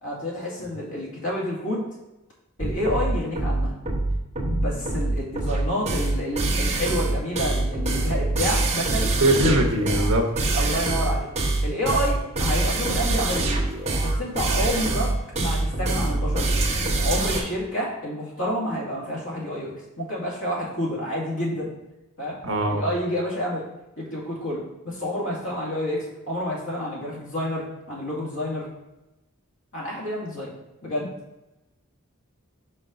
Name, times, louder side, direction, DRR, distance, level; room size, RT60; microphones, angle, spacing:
voice 1, 0.0-1.9 2.6-3.7 4.5-9.1 10.6-11.3 11.6-13.5 14.0-16.7 17.0-21.7 22.2-22.4 22.7-23.6 24.0-28.7 29.7-30.5 30.8-31.1, equal, 60° left, -5 dB, 2.2 m, -29 dB
sound 1, 2.6-17.4, right 2 dB, 30° right, 1.0 m, -24 dB
voice 2, 9.2-10.3 22.4-22.9, right 1 dB, 65° right, 3 dB, 1.1 m, -21 dB
5.5 x 4.7 x 5.1 m, 0.95 s
head